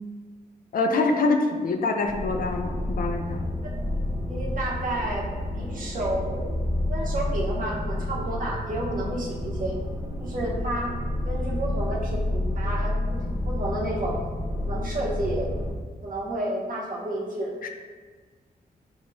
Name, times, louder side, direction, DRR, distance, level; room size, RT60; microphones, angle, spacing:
voice 1, 0.7-3.4 17.6-17.7, left 3 dB, 60° left, 4 dB, 0.4 m, -25 dB
sound 1, 2.0-15.7, left 1 dB, 25° right, 0.5 m, -29 dB
voice 2, 4.3-5.3 5.5-6.5 6.9-9.8 10.2-10.9 11.2-14.3 14.6-15.5 16.0-17.5, right 1 dB, 55° right, -3 dB, 0.8 m, -31 dB
5.8 x 2.0 x 2.6 m, 1.5 s
wide cardioid pair, 120°, 17 cm